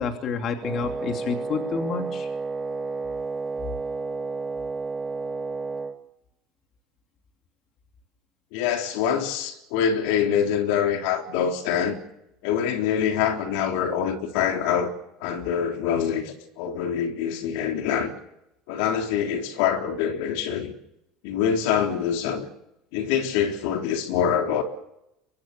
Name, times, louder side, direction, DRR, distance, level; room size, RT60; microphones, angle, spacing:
voice 1, 0.0-2.3, left 5 dB, 35° left, 2.7 m, -29 dB
Wind instrument woodwind instrument, 0.6-6.0, right 4 dB, 15° right, 1.8 m, -31 dB
voice 2, 8.5-12.0 12.4-14.9 15.2-18.1 18.7-20.7 21.2-22.5 22.9-24.6, left 8 dB, 70° left, 3.7 m, -25 dB
24.5 x 22.0 x 6.9 m
cardioid pair, 160°, 0 cm